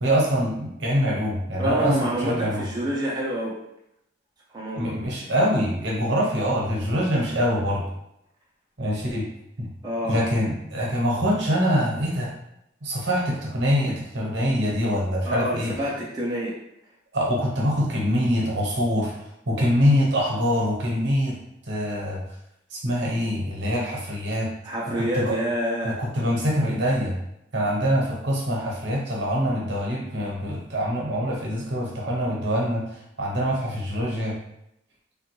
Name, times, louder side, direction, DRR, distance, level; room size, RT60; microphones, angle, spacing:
voice 1, 0.0-2.6 4.8-7.8 8.8-9.2 9.6-9.7 10.0-12.3 12.8-15.7 17.1-19.2 19.5-21.4 21.7-22.2 22.7-24.5 24.9-25.4 25.8-27.2 27.5-32.8 33.2-34.4, equal, 70° right, -2 dB, 0.9 m, -24 dB
voice 2, 1.6-3.6 4.5-5.0 9.8-10.2 15.2-16.6 24.6-26.0, equal, 20° right, -4 dB, 0.4 m, -27 dB
3.4 x 2.2 x 3.0 m, 0.80 s
head